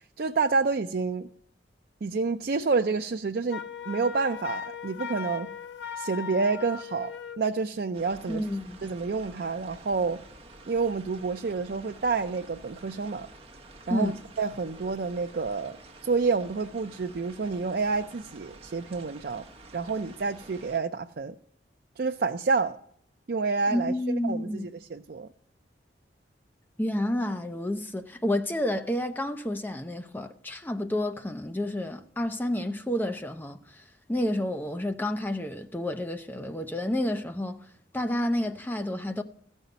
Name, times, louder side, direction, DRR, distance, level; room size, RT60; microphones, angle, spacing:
voice 1, 0.2-1.3 2.0-5.5 6.0-8.4 8.8-10.2 10.7-13.3 13.9-14.1 14.4-15.8 16.0-19.4 19.7-21.3 22.0-22.8 23.3-25.3, right 4 dB, 55° right, 0.4 m, -28 dB
Wind instrument woodwind instrument, 3.5-7.4, left 8 dB, 75° left, 0.5 m, -38 dB
sound 1, 7.9-20.8, right 2 dB, 30° right, 1.2 m, -49 dB
voice 2, 8.3-8.8 13.9-14.2 23.7-24.7 26.8-33.8 34.1-37.6 37.9-39.2, left 1 dB, 10° left, 0.6 m, -30 dB
15.0 x 5.4 x 9.2 m
head